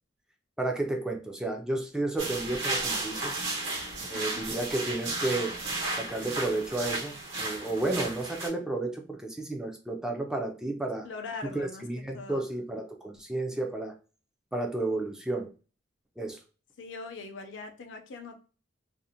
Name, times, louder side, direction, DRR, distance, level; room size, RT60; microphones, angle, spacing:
voice 1, 0.6-3.4 4.1-5.6 5.9-11.1 11.4-13.9 14.5-15.5 16.2-16.4, right 2 dB, 5° right, 2 dB, 0.3 m, -32 dB
sound 1, 2.2-8.5, right 2 dB, 75° right, 1.0 m, -34 dB
voice 2, 3.9-4.4 11.0-11.8 12.1-12.5 16.8-18.4, left 4 dB, 70° left, 5 dB, 0.5 m, -42 dB
2.5 x 2.0 x 2.7 m, 0.35 s
head